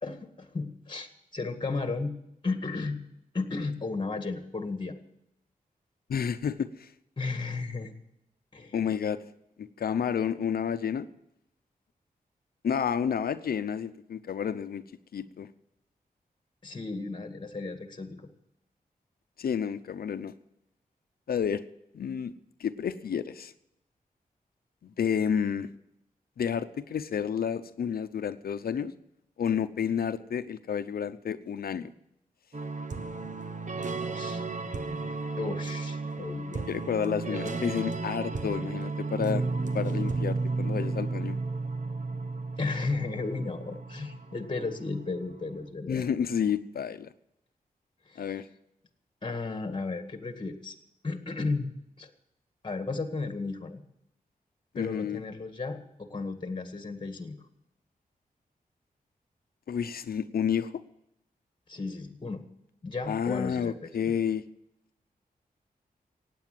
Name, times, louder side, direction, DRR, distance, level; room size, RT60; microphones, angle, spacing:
voice 1, 0.0-2.1 2.4-3.0 3.3-4.9 7.2-7.9 8.5-8.7 16.6-18.2 34.1-34.4 35.4-36.7 37.3-37.5 42.6-46.1 48.1-48.3 49.2-50.7 51.0-51.7 52.0-52.1 52.6-53.8 54.8-57.4 61.7-62.4 62.8-63.8 64.0-64.1, left 3 dB, 30° left, 7 dB, 1.9 m, -34 dB
voice 2, 6.1-6.9 8.7-9.2 9.6-11.1 12.6-14.8 15.1-15.5 19.4-20.3 21.3-21.6 21.9-22.3 22.6-23.5 24.8-25.7 26.4-28.9 29.4-31.9 36.7-39.5 39.7-41.4 45.9-47.1 48.2-48.5 54.7-55.2 59.7-60.7 63.1-64.4, left 7 dB, 85° left, 11 dB, 0.7 m, -30 dB
sound 1, 32.5-45.1, right 3 dB, 55° right, 1.2 m, -33 dB
16.5 x 9.4 x 7.8 m, 0.82 s
wide cardioid pair, 100°, 15 cm